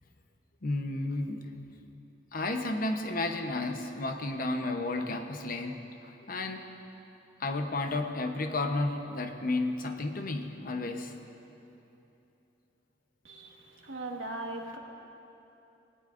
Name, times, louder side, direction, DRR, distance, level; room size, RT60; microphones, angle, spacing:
voice 1, 0.6-1.4 2.3-6.6 7.4-11.1, left 2 dB, 50° left, 5 dB, 0.9 m, -32 dB
voice 2, 13.2-14.8, right 2 dB, 85° right, 1 dB, 1.5 m, -39 dB
19.0 x 18.0 x 2.6 m, 2.9 s
head